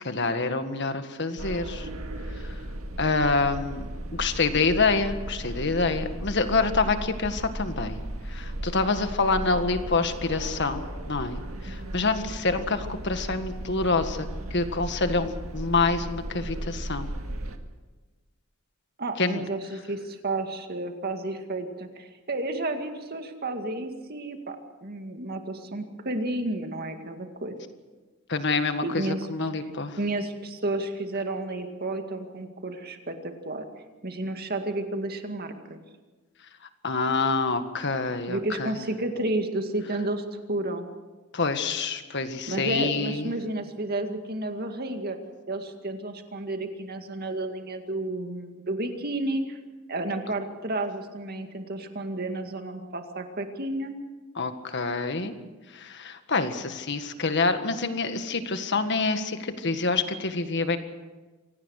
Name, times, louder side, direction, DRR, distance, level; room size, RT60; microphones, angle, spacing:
voice 1, 0.0-1.9 2.4-2.5 3.0-3.8 4.1-8.0 8.3-17.1 19.2-19.4 28.3-29.0 29.3-30.0 36.8-38.8 41.3-43.3 54.4-55.3 55.7-60.8, left 3 dB, 55° left, 8 dB, 1.7 m, -27 dB
sound 1, 1.4-17.6, right 1 dB, 80° right, 2.0 m, -36 dB
voice 2, 19.0-27.6 28.8-29.5 30.0-33.7 34.0-35.8 38.3-40.9 42.5-45.2 45.5-49.6 49.9-54.0, right 2 dB, 45° right, 5 dB, 2.2 m, -31 dB
25.5 x 18.0 x 6.5 m, 1.3 s
head